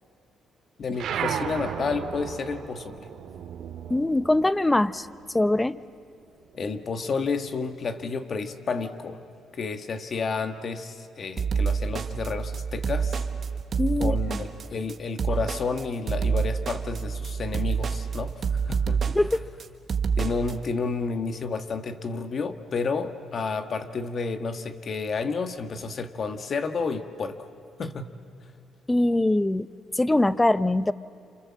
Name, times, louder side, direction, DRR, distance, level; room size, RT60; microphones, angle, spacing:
voice 1, 0.8-3.0 6.5-9.2 9.5-13.2 14.0-19.0 20.2-27.4 27.8-28.1, left 4 dB, 50° left, 8 dB, 1.7 m, -31 dB
sound 1, 0.9-5.8 6.1-7.6, right 8 dB, 75° right, 2.1 m, -35 dB
voice 2, 3.9-5.8 13.8-14.4 19.1-19.5 28.9-29.7 29.9-30.9, left 1 dB, 15° left, 16 dB, 0.7 m, -23 dB
sound 2, 11.4-20.5, right 6 dB, 50° right, 1.4 m, -27 dB
28.5 x 27.5 x 7.5 m, 2.5 s
cardioid pair, 90°, 0 cm